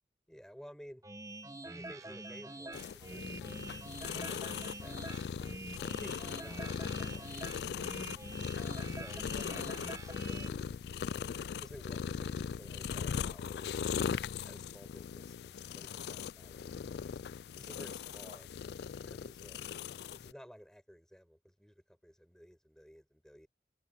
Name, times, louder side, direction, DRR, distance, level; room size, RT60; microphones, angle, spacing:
voice 1, 0.3-1.1 1.7-3.6 4.1-5.0 6.0-7.9 8.9-10.8 11.6-13.8 14.4-16.9 17.6-18.5 19.0-19.6 20.1-23.5, equal, 5° left, 7.3 m, -55 dB
sound 1, 1.0-10.5, right 2 dB, 20° right, 1.0 m, -46 dB
sound 2, 2.7-20.3, left 7 dB, 65° left, 0.3 m, -39 dB
head